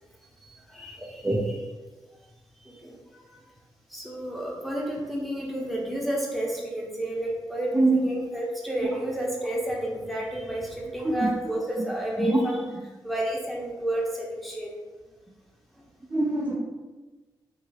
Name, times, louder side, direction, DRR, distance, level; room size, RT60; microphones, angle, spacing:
voice 1, 0.4-1.3 2.6-2.9 3.3-3.4 3.9-12.6 13.0-14.7, right 1 dB, ahead, -3 dB, 1.0 m, -31 dB
voice 2, 16.1-16.5, right 2 dB, 15° right, -4 dB, 0.6 m, -23 dB
2.9 x 2.8 x 2.9 m, 1.3 s
supercardioid pair, 40°, 10 cm